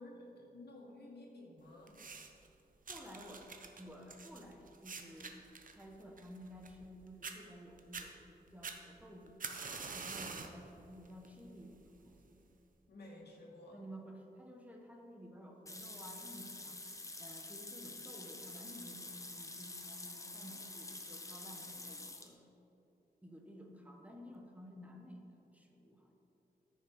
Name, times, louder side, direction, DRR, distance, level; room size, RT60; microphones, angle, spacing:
voice 1, 0.0-2.0 12.9-13.8, left 1 dB, 75° left, -3 dB, 2.4 m, -53 dB
sound 1, 1.9-2.5 2.9-6.9 7.2-7.4 7.8-8.1 8.6-10.6 11.0-11.4 12.2-12.3, right 4 dB, 55° right, 0.8 m, -46 dB
voice 2, 2.9-3.5 3.8-9.6 9.9-12.4 13.7-16.8 17.2-22.5 23.2-26.1, equal, 10° right, 1 dB, 1.1 m, -53 dB
sound 2, 15.7-22.3, left 2 dB, 20° left, 0.7 m, -48 dB
14.0 x 6.5 x 5.0 m, 2.9 s
wide cardioid pair, 155°, 17 cm